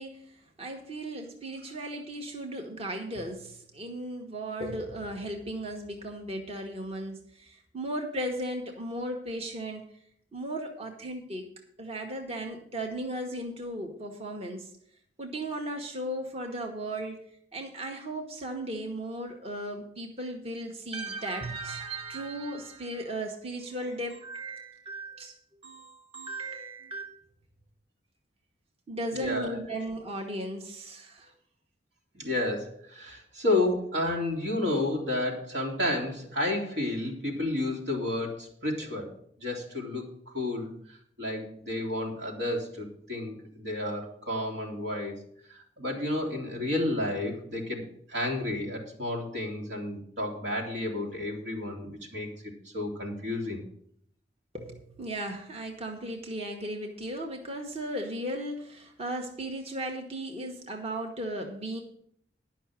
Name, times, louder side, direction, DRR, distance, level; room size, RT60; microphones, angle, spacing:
voice 1, 0.0-9.9 10.3-11.5 11.8-14.7 15.2-17.2 17.5-27.1 28.9-31.3 54.5-61.8, right 1 dB, 35° right, 2 dB, 1.3 m, -36 dB
voice 2, 29.1-29.6 32.1-39.1 39.4-45.2 45.5-52.3 52.7-53.6, left 1 dB, 85° right, -1 dB, 2.9 m, -31 dB
11.0 x 5.9 x 7.3 m, 0.66 s
head